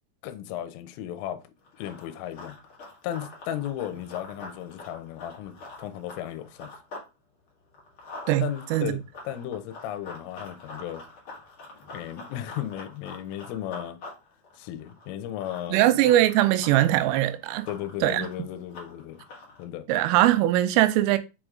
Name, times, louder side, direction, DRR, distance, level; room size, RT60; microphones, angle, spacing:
voice 1, 0.2-1.4 1.8-2.5 3.0-6.7 8.4-9.0 9.3-11.0 11.9-14.0 14.6-15.9 17.7-19.2 19.6-19.9, left 11 dB, 80° left, 3.3 m, -35 dB
Run, 1.6-7.1 7.4-19.6, left 2 dB, 65° left, 1.3 m, -45 dB
voice 2, 8.3-8.9 15.7-17.7 18.0-18.3 19.9-21.2, right 14 dB, 85° right, 3.2 m, -21 dB
7.0 x 4.8 x 3.7 m
omnidirectional pair, 5.9 m